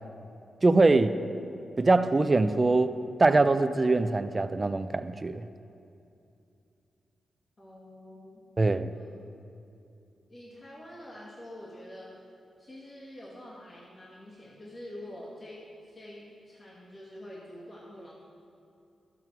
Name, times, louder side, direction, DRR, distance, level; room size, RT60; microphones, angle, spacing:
voice 1, 0.6-1.1 1.8-2.9 3.2-5.4 8.6-8.9, right 3 dB, 25° right, 11 dB, 0.4 m, -23 dB
voice 2, 7.6-8.4 8.9-9.1 10.3-12.2 12.6-18.1, left 1 dB, 35° left, -7 dB, 2.3 m, -46 dB
13.0 x 7.8 x 4.6 m, 2.6 s
cardioid pair, 100°, 0 cm